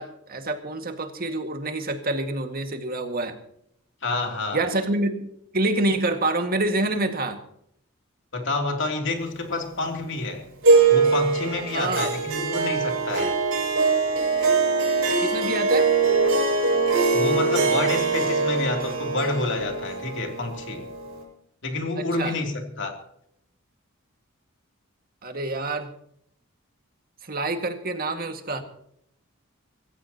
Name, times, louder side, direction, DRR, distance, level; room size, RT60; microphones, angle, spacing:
voice 1, 0.0-3.3 4.5-7.4 11.7-12.2 15.2-15.9 22.0-22.4 25.2-25.9 27.2-28.6, right 2 dB, 45° right, 5 dB, 1.9 m, -27 dB
voice 2, 4.0-4.6 8.3-10.5 10.9-13.4 17.1-20.9 21.6-23.0, left 2 dB, 60° left, 3 dB, 3.0 m, -28 dB
Harp, 10.6-21.2, right 4 dB, 75° right, 6.6 m, -22 dB
25.0 x 14.5 x 2.9 m, 0.72 s
head